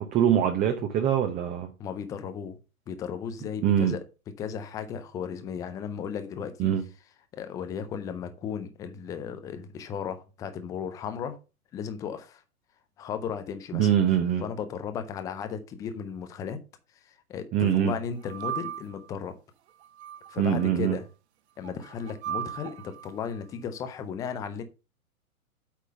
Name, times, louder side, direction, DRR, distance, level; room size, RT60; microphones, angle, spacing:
voice 1, 0.0-1.7 3.6-4.0 6.6-6.8 13.7-14.4 17.5-17.9 20.4-21.0, right 9 dB, 20° right, 0.8 m, -23 dB
voice 2, 1.8-2.6 2.9-4.0 4.4-6.7 7.3-11.4 11.7-12.4 13.0-13.9 14.4-16.6 17.0-19.3 20.3-21.1 21.6-24.6, left 7 dB, 10° left, 0.4 m, -35 dB
sound 1, 18.2-19.1 19.8-20.7 21.6-23.1, right 10 dB, 50° right, 0.8 m, -37 dB
8.5 x 3.7 x 6.8 m
hypercardioid pair, 120°, 43 cm